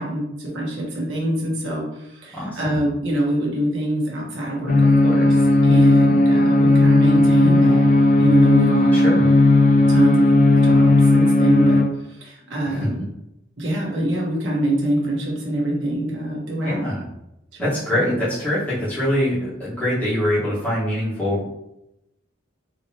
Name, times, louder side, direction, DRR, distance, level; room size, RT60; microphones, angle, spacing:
voice 1, 0.0-7.9 8.2-9.1 9.9-10.3 10.6-11.8 12.1-13.0 13.6-16.8 17.5-17.8, right 1 dB, 65° right, -4 dB, 1.1 m, -25 dB
voice 2, 2.3-2.8 8.9-9.3 12.6-13.1 16.6-17.0 17.6-21.5, left 1 dB, 10° left, -11 dB, 1.4 m, -24 dB
sound 1, 4.7-11.8, left 2 dB, 40° left, 0.4 m, -15 dB
3.7 x 3.1 x 2.9 m, 0.85 s
head